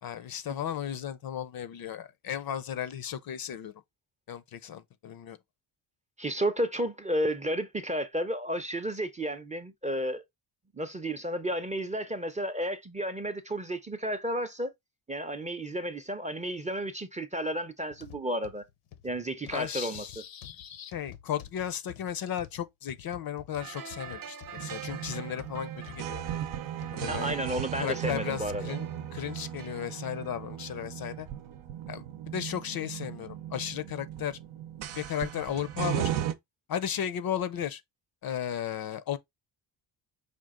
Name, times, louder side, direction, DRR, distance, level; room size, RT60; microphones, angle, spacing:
voice 1, 0.0-3.7 4.3-5.4 19.5-26.2 26.9-27.4 27.8-31.3 31.9-32.1 32.3-34.4 35.0-36.1 36.7-37.8 38.2-39.2, left 9 dB, 50° left, 0.6 m, -35 dB
voice 2, 6.2-10.2 10.7-14.7 15.1-18.6 19.0-20.1 27.1-28.7, right 1 dB, 15° right, 0.5 m, -32 dB
sound 1, 17.9-27.0 27.6-27.7 28.4-28.5, left 11 dB, 80° left, 0.8 m, -50 dB
sound 2, 23.6-31.2 31.5-31.6, right 7 dB, 45° right, 0.8 m, -47 dB
sound 3, 24.6-36.3, right 11 dB, 75° right, 0.7 m, -37 dB
5.1 x 2.4 x 3.6 m
cardioid pair, 95°, 49 cm